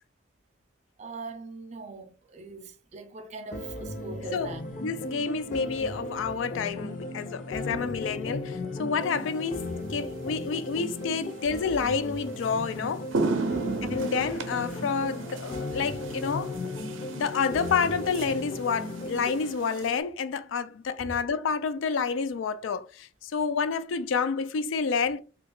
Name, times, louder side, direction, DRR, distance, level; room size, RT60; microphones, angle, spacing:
voice 1, 1.0-4.6 7.6-7.9 13.4-13.9 21.0-21.2, right 3 dB, 35° right, 0.4 m, -41 dB
sound 1, 3.5-19.5, left 2 dB, 40° left, 0.6 m, -36 dB
voice 2, 4.8-13.1 13.9-16.6 17.2-25.2, left 5 dB, 80° left, 0.4 m, -29 dB
sound 2, 9.4-9.7 11.8-11.9 12.4-12.6 12.9-20.0, right 3 dB, 85° right, 0.5 m, -35 dB
2.7 x 2.3 x 3.7 m
head